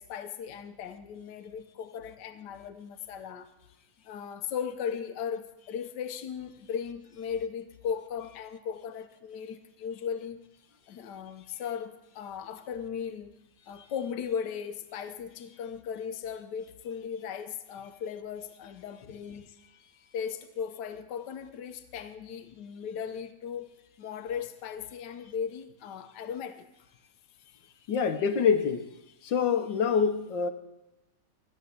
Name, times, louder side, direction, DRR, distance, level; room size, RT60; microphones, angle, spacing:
voice 1, 0.0-3.5 4.0-10.4 10.9-13.3 13.7-19.5 20.1-23.7 24.0-26.7, left 7 dB, 70° left, 1.5 m, -37 dB
voice 2, 27.9-28.9 29.2-30.5, left 6 dB, 85° left, 1.7 m, -26 dB
15.0 x 7.7 x 9.6 m
omnidirectional pair, 2.0 m